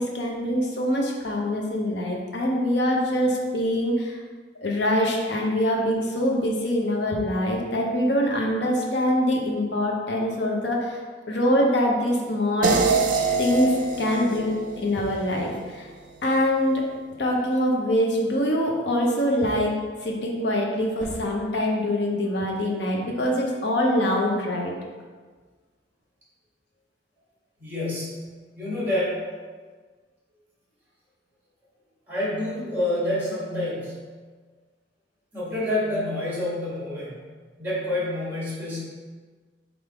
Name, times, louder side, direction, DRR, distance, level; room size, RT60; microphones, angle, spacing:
voice 1, 0.0-4.2 4.6-11.0 11.3-12.8 13.4-15.9 16.2-16.8 17.2-19.7 20.0-24.7, equal, 70° left, 0 dB, 0.7 m, -24 dB
sound 1, 12.6-15.7, right 4 dB, 45° right, 0.4 m, -25 dB
sound 2, 18.5-18.7 20.7-21.8, right 1 dB, 5° left, 0.5 m, -43 dB
voice 2, 27.6-28.3 28.5-29.2 32.1-34.1 35.3-37.1 37.6-38.8, left 1 dB, 10° right, -7 dB, 1.3 m, -28 dB
3.4 x 2.6 x 4.6 m, 1.5 s
head